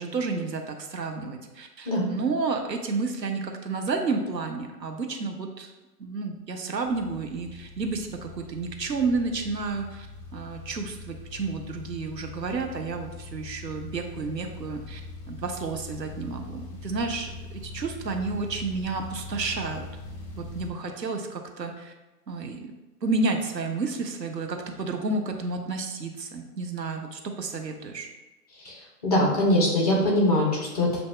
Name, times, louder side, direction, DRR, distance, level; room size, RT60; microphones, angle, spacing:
voice 1, 0.0-5.7 6.0-10.1 10.3-15.0 15.3-19.8 20.3-21.9 22.3-22.7 23.0-28.1, right 3 dB, 90° right, 4 dB, 0.7 m, -31 dB
sound 1, 6.8-20.7, left 3 dB, 45° left, 1.1 m, -42 dB
voice 2, 29.0-31.0, left 1 dB, 25° left, -2 dB, 0.7 m, -22 dB
6.7 x 2.7 x 2.2 m, 1.1 s
figure-of-eight pair, 130°, 49 cm